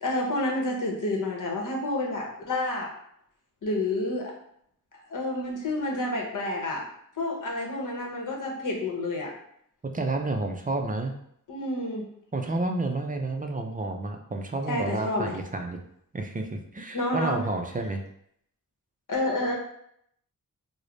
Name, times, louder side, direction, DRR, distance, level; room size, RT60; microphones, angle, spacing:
voice 1, 0.0-2.9 3.6-4.3 5.1-6.8 7.2-9.3 11.5-12.1 14.7-15.3 16.9-17.4 19.1-19.6, left 2 dB, 65° left, -1 dB, 0.9 m, -29 dB
voice 2, 9.8-11.2 12.3-15.8 16.1-18.0, right 2 dB, 25° right, 4 dB, 0.4 m, -30 dB
3.2 x 2.1 x 3.8 m, 0.71 s
wide cardioid pair, 130°, 34 cm